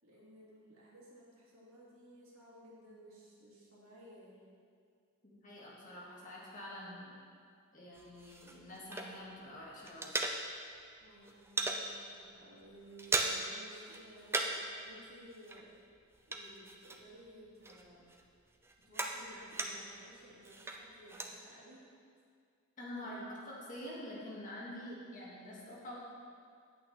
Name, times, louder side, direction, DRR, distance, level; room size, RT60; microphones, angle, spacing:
voice 1, 0.0-4.5 11.0-15.8 16.2-18.1 18.8-21.9 23.0-23.2, right 1 dB, 75° right, -6 dB, 2.6 m, -56 dB
voice 2, 5.2-7.1 7.7-10.1 22.8-23.2 23.7-26.0, left 1 dB, 35° left, -6 dB, 2.0 m, -47 dB
sound 1, 7.9-9.4 9.7-10.8 11.1-11.8 12.3-12.4 12.7-13.6 13.9-14.7 15.0-17.3 17.6-20.0 20.4-21.3, right 2 dB, 10° right, 0.5 m, -38 dB
8.7 x 8.3 x 4.3 m, 2.2 s
head